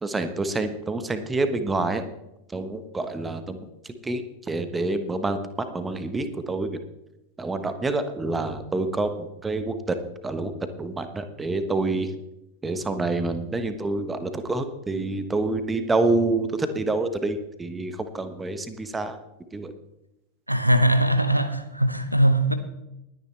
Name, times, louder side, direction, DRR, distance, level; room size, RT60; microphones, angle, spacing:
voice 1, 0.0-2.0 2.5-3.6 3.8-5.4 5.7-6.8 7.4-10.0 10.2-12.1 12.6-19.2 19.5-19.7, right 2 dB, 10° right, 1.2 m, -27 dB
voice 2, 20.5-22.5, right 1 dB, 90° right, 0.9 m, -21 dB
20.5 x 9.8 x 3.3 m
figure-of-eight pair, 90°, 0 cm